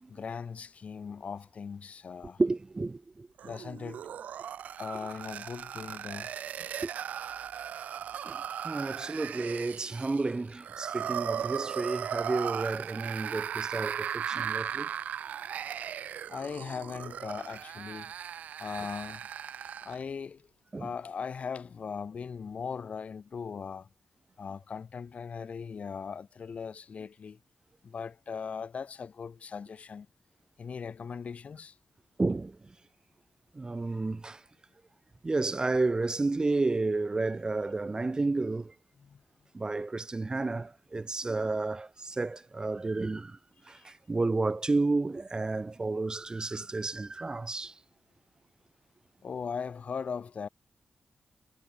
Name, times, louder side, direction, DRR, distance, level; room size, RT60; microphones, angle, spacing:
voice 1, 0.1-2.4 3.4-4.1 4.8-6.3 16.3-18.1 18.6-19.3 19.8-20.5 20.8-23.9 24.4-27.4 27.8-30.1 30.6-31.8 39.0-39.2 43.7-43.9 49.2-50.5, left 6 dB, 60° left, 1.5 m, -39 dB
voice 2, 2.4-3.5 6.8-6.9 8.1-14.9 20.7-20.9 32.2-32.6 33.5-34.4 35.2-38.7 39.5-43.4 43.7-47.7, right 3 dB, 30° right, 1.9 m, -31 dB
sound 1, 3.4-20.0, right 9 dB, 90° right, 0.5 m, -37 dB
cardioid pair, 65°, 3 cm